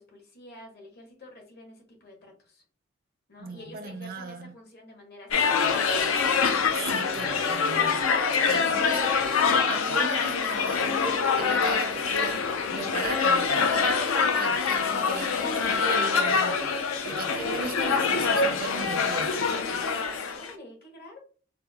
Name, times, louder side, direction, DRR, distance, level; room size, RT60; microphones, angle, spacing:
voice 1, 0.0-2.6 3.3-6.0 19.7-21.2, left 1 dB, 55° left, 1.1 m, -49 dB
voice 2, 3.4-4.5 6.7-8.1 8.5-19.4, right 4 dB, 45° right, 0.4 m, -38 dB
sound 1, 5.3-20.5, left 5 dB, 85° left, 0.5 m, -25 dB
4.1 x 2.1 x 2.7 m
head